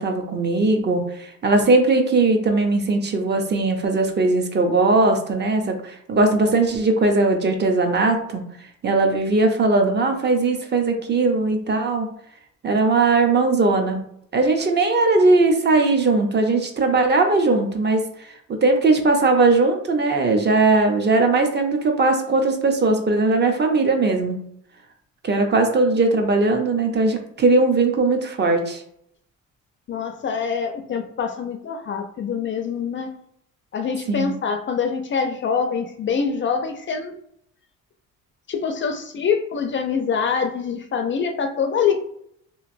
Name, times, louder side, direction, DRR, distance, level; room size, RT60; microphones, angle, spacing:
voice 1, 0.0-8.4 8.8-12.1 12.6-14.0 14.3-18.3 18.6-24.4 25.2-28.8 34.1-34.4, right 3 dB, 35° right, 4 dB, 0.6 m, -19 dB
voice 2, 29.9-33.1 33.7-37.1 38.5-42.0, left 6 dB, 40° left, 6 dB, 0.4 m, -25 dB
3.0 x 2.5 x 2.5 m, 0.70 s
cardioid pair, 95°, 30 cm